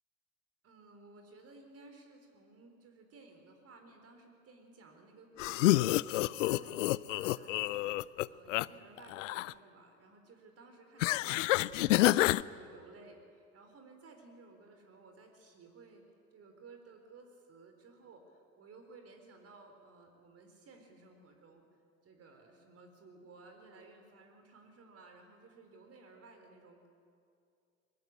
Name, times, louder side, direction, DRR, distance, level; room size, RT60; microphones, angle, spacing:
voice 1, 0.6-16.0 16.3-21.6 22.0-26.9, right 3 dB, 35° right, 4 dB, 4.2 m, -57 dB
sound 1, 5.4-8.7 9.0-9.5 11.0-12.4, left 17 dB, 60° left, 0.6 m, -28 dB
22.5 x 22.5 x 8.9 m, 2.4 s
figure-of-eight pair, 70°, 42 cm